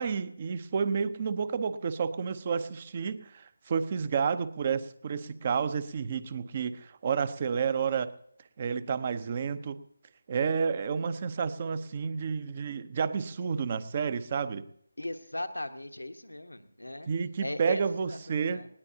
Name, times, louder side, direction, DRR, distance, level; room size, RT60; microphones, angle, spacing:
voice 1, 0.0-8.1 8.6-9.8 10.3-14.6 17.1-18.6, right 6 dB, 35° right, 14 dB, 0.8 m, -30 dB
voice 2, 15.0-17.1 17.4-17.8 18.1-18.2 18.5-18.7, left 1 dB, 90° left, 8 dB, 1.2 m, -37 dB
19.5 x 18.0 x 2.8 m, 0.68 s
figure-of-eight pair, 155°, 0 cm